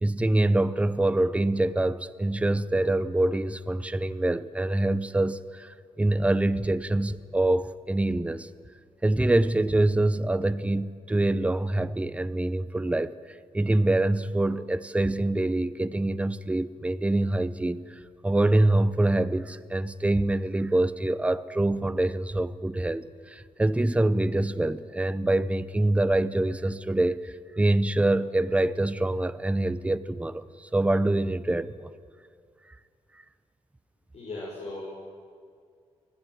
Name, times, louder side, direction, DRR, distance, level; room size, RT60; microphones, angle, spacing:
voice 1, 0.0-8.5 9.0-13.1 13.5-17.8 18.2-31.9, right 2 dB, 10° right, 0.7 m, -25 dB
voice 2, 34.1-34.9, left 2 dB, 65° left, 5.4 m, -37 dB
24.5 x 17.0 x 9.6 m
wide cardioid pair, 115°, 12 cm